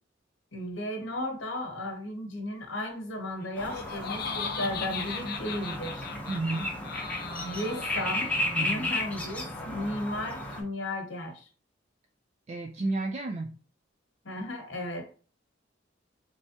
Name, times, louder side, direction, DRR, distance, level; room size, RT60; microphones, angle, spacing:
voice 1, 0.5-6.1 7.4-11.5 14.2-15.1, left 1 dB, 75° left, 3 dB, 1.0 m, -35 dB
Laughter, 3.4-8.6, left 5 dB, 55° left, 0.5 m, -38 dB
sound 1, 3.6-10.6, left 1 dB, 10° left, 0.7 m, -34 dB
voice 2, 6.3-6.8 8.5-8.9 12.5-13.5, right 2 dB, 35° right, 4 dB, 0.3 m, -32 dB
3.3 x 3.3 x 2.8 m, 0.40 s
head